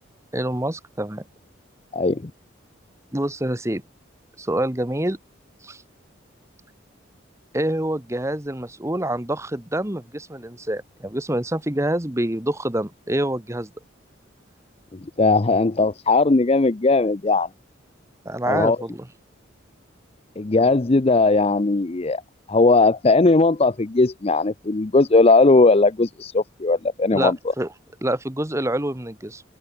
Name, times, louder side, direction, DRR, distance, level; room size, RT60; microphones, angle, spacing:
voice 1, 0.3-1.2 3.1-3.8 4.4-5.2 5.6-5.8 7.5-13.7 18.2-19.0 27.1-27.7 28.0-29.4, right 1 dB, 15° right, 1.3 m, -26 dB
voice 2, 1.9-2.3 15.2-17.5 18.5-18.8 20.4-22.2 22.5-27.4, left 3 dB, 30° left, 0.5 m, -18 dB
open air
head